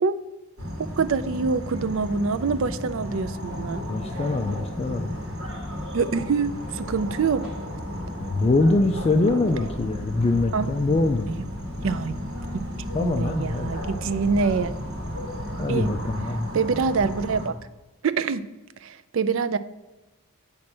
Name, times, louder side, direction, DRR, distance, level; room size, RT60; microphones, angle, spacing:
sound 1, 0.6-17.5, left 1 dB, 75° right, 1.8 m, -34 dB
voice 1, 1.0-3.8 5.9-7.5 10.5-10.7 11.8-12.1 13.0-14.7 15.7-15.9 16.5-17.5 18.0-18.4 18.8-19.6, right 5 dB, 60° right, 12 dB, 0.4 m, -25 dB
sound 2, 3.4-16.1, right 1 dB, 5° right, 2.3 m, -42 dB
voice 2, 3.9-5.2 8.2-11.3 12.9-13.7 15.6-16.5, left 2 dB, 25° left, 6 dB, 0.3 m, -23 dB
8.4 x 3.2 x 6.0 m, 1.1 s
head